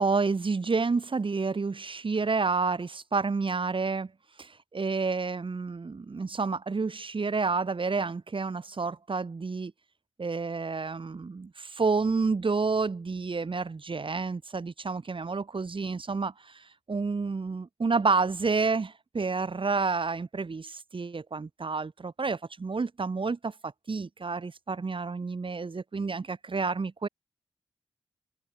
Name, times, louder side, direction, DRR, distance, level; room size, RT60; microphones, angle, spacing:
voice 1, 0.0-4.1 4.4-9.7 10.2-16.6 16.9-27.1, right 4 dB, 50° right, 4.2 m, -29 dB
supercardioid pair, 40°, 11 cm